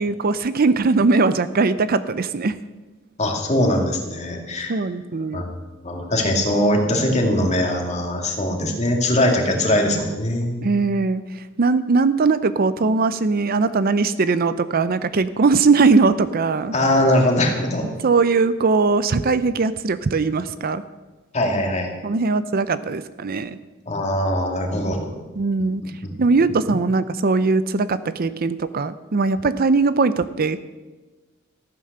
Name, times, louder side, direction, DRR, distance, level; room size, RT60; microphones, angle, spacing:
voice 1, 0.0-2.6 4.7-5.4 10.6-11.2 11.6-16.7 18.0-20.8 22.0-23.6 25.4-25.8 26.2-30.6, right 4 dB, 45° right, 14 dB, 0.5 m, -20 dB
voice 2, 3.2-4.8 5.3-5.5 5.8-10.7 16.7-17.9 21.3-21.9 23.9-25.2 26.0-26.1, left 1 dB, 35° left, 2 dB, 2.3 m, -21 dB
15.0 x 9.5 x 6.7 m, 1.2 s
head